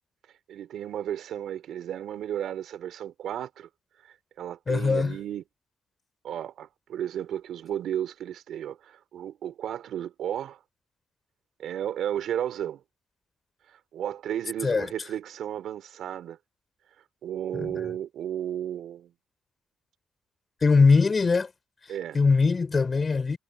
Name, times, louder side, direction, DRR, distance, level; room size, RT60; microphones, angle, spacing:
voice 1, 0.5-3.7 4.4-5.4 6.2-10.6 11.6-12.8 13.9-16.4 17.2-19.1 21.9-22.2, right 10 dB, 75° right, 3.8 m, -33 dB
voice 2, 4.7-5.2 14.6-14.9 17.5-17.8 20.6-21.5 22.1-23.4, left 4 dB, 30° left, 7.0 m, -21 dB
cardioid pair, 90°, 0 cm